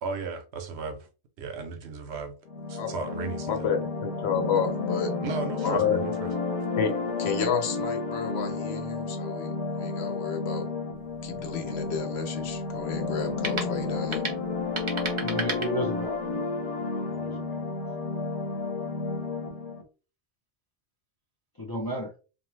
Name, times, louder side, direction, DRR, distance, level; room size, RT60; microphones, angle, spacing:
voice 1, 0.0-1.1 1.4-2.4 2.7-3.7 5.2-6.3, right 5 dB, 75° right, 0.9 m, -35 dB
sound 1, 2.5-19.8, left 3 dB, 85° left, 1.1 m, -31 dB
voice 2, 3.5-5.1 5.6-6.0 6.8-6.9 7.2-10.7 11.2-14.2, left 7 dB, 70° left, 0.9 m, -30 dB
sound 2, 10.9-16.3, right 3 dB, 35° right, 0.5 m, -37 dB
voice 3, 15.2-16.2 17.1-17.6 21.6-22.1, equal, 35° left, 0.3 m, -33 dB
2.7 x 2.2 x 3.1 m
omnidirectional pair, 1.1 m